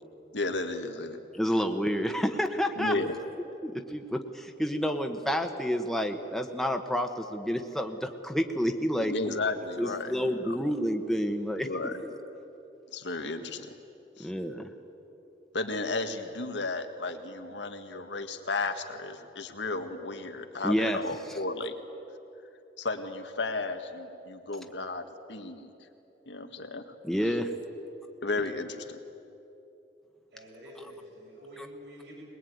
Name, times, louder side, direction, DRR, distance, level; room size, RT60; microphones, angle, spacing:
voice 1, 0.3-1.2 2.8-3.2 9.0-10.6 11.6-12.0 12.9-13.7 14.2-14.3 15.5-21.7 22.8-25.7 26.3-26.9 27.2-27.4 28.2-29.0, left 3 dB, 90° left, 7 dB, 1.7 m, -34 dB
voice 2, 1.3-2.9 3.6-9.1 9.8-11.7 12.0-12.1 14.2-14.7 20.6-21.0 27.0-27.5, equal, ahead, 4 dB, 1.1 m, -29 dB
voice 3, 30.3-32.2, equal, 75° right, -4 dB, 7.8 m, -47 dB
22.0 x 21.5 x 9.4 m, 3.0 s
head